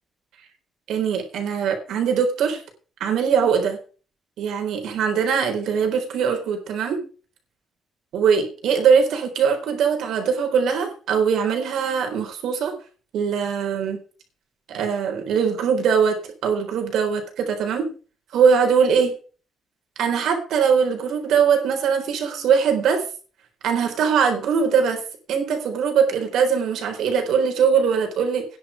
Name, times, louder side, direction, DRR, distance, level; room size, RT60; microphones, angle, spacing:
voice 1, 0.9-2.6 3.0-3.8 4.4-7.0 8.1-12.7 13.1-14.0 14.7-16.2 16.4-17.9 18.3-19.1 20.0-23.0 23.6-25.0 25.3-28.5, right 6 dB, 80° right, 4 dB, 4.0 m, -21 dB
10.5 x 6.3 x 8.3 m, 0.38 s
cardioid pair, 165°, 0 cm